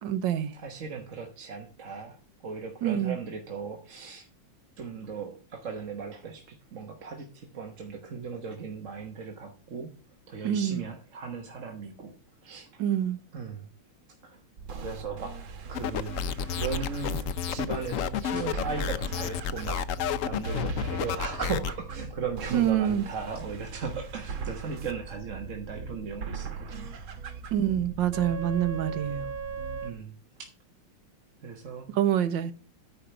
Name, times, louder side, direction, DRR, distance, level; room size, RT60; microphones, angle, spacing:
voice 1, 0.0-0.5 2.8-3.2 10.4-10.8 12.8-13.2 22.5-23.1 27.5-29.3 31.9-32.5, right 10 dB, 70° right, 1.6 m, -26 dB
voice 2, 0.5-2.2 2.4-4.2 4.8-9.9 10.3-12.1 12.4-12.7 13.3-13.7 14.2-14.4 14.8-15.4 15.7-16.2 16.5-17.2 17.5-19.8 20.2-27.0 29.8-30.1 30.4-30.5 31.4-31.9, right 5 dB, 45° right, 1.4 m, -37 dB
sound 1, 14.6-29.9, right 5 dB, 90° right, 2.2 m, -39 dB
sound 2, 15.7-21.7, left 8 dB, 85° left, 0.7 m, -31 dB
10.0 x 5.0 x 6.8 m
omnidirectional pair, 2.1 m